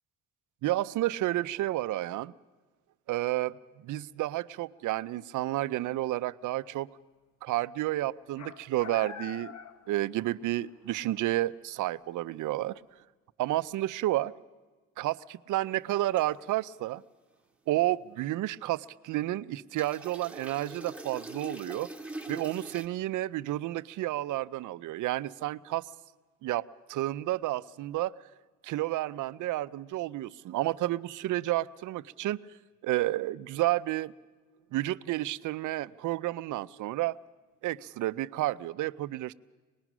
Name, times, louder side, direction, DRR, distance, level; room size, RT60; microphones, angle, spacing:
voice 1, 0.6-2.3 3.1-3.6 3.8-6.9 7.4-9.5 9.9-12.8 13.4-14.3 15.0-17.0 17.7-21.9 22.3-25.9 26.4-26.6 26.9-28.1 28.6-32.4 32.8-34.1 34.7-37.2 37.6-39.3, right 16 dB, 80° right, 15 dB, 0.6 m, -31 dB
Coyote from the front door ampl, 8.4-10.6 10.9-11.0 12.2-12.3, left 7 dB, 65° left, 1.2 m, -44 dB
sound 1, 16.2-16.4 19.8-22.9, right 2 dB, 5° right, 2.0 m, -42 dB
25.0 x 20.0 x 6.1 m, 1.3 s
cardioid pair, 90°, 30 cm